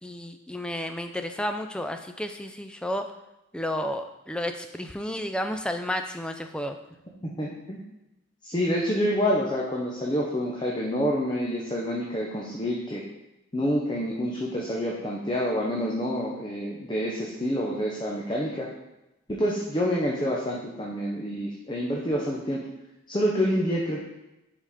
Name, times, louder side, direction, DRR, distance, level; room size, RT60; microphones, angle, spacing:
voice 1, 0.0-3.1 3.5-6.8, left 1 dB, 5° left, 6 dB, 0.3 m, -32 dB
voice 2, 7.2-7.8 8.4-13.0 13.5-18.7 19.3-22.6 23.1-24.0, equal, 20° left, -3 dB, 0.8 m, -27 dB
5.5 x 4.8 x 5.0 m, 0.92 s
head